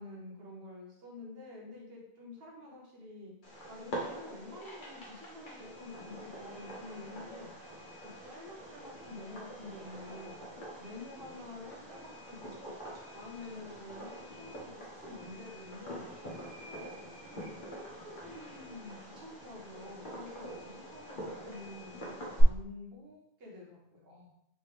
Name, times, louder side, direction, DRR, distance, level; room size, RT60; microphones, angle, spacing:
voice 1, 0.0-3.3 3.7-7.5 8.2-10.4 10.8-16.4 16.6-16.8 17.1-17.4 17.7-24.3, left 2 dB, 70° right, -2 dB, 1.4 m, -48 dB
Fireworks, 3.4-22.4, equal, 55° left, 1.2 m, -44 dB
4.0 x 3.5 x 3.4 m, 0.77 s
omnidirectional pair, 1.0 m